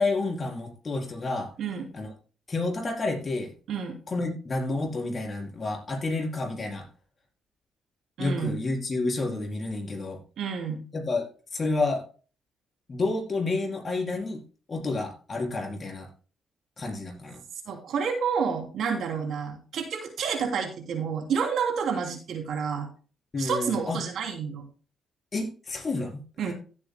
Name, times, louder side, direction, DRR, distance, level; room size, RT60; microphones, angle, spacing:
voice 1, 0.0-1.5 1.9-2.1 2.5-3.5 4.1-6.8 8.2-10.2 10.9-11.3 11.5-12.0 12.9-14.4 14.7-16.1 16.8-17.4 23.3-24.0 25.3-26.2, left 3 dB, 35° left, 0 dB, 4.2 m, -29 dB
voice 2, 8.2-8.6 10.4-10.8 17.7-22.9 23.4-24.6 26.4-26.5, right 6 dB, 70° right, 3 dB, 2.9 m, -29 dB
16.5 x 8.2 x 2.2 m, 0.37 s
cardioid pair, 90°, 0 cm